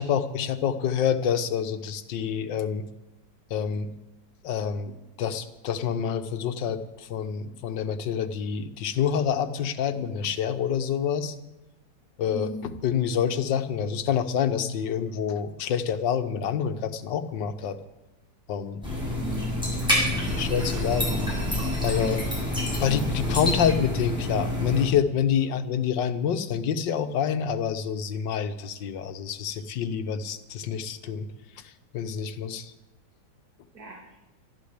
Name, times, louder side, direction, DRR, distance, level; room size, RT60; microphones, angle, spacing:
voice 1, 0.0-2.8 3.5-3.9 4.4-11.3 12.2-17.8 18.5-18.8 20.3-21.2 21.8-22.2 22.8-31.3 31.6-32.7, left 8 dB, 90° left, 11 dB, 1.6 m, -27 dB
voice 2, 12.3-12.6 18.8-19.5 19.8-20.1 22.0-22.2 22.8-23.0 33.7-34.1, right 4 dB, 60° right, -1 dB, 2.9 m, -40 dB
sound 1, 18.8-24.8, left 1 dB, ahead, 7.1 m, -27 dB
13.0 x 11.5 x 8.1 m, 1.0 s
omnidirectional pair, 1.9 m